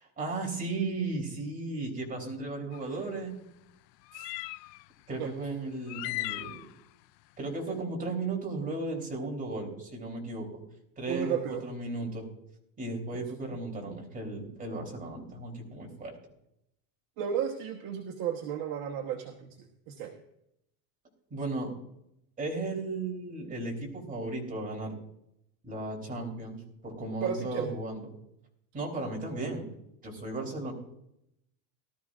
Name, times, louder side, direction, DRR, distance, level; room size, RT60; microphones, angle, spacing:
voice 1, 0.0-3.3 4.1-4.3 5.1-6.7 7.4-10.6 11.0-12.3 12.8-16.2 21.3-21.7 22.4-24.9 25.6-28.1 28.7-29.7 30.0-30.7, right 2 dB, 15° right, 0 dB, 3.4 m, -35 dB
sound 1, 2.7-2.8 4.1-4.8 5.9-6.7, left 22 dB, 80° left, 0.6 m, -37 dB
voice 2, 11.1-11.6 13.1-13.2 13.9-14.1 17.2-20.2 27.2-27.7, right 8 dB, 45° right, 2 dB, 1.2 m, -34 dB
18.0 x 13.5 x 2.5 m, 0.79 s
supercardioid pair, 145°, 49 cm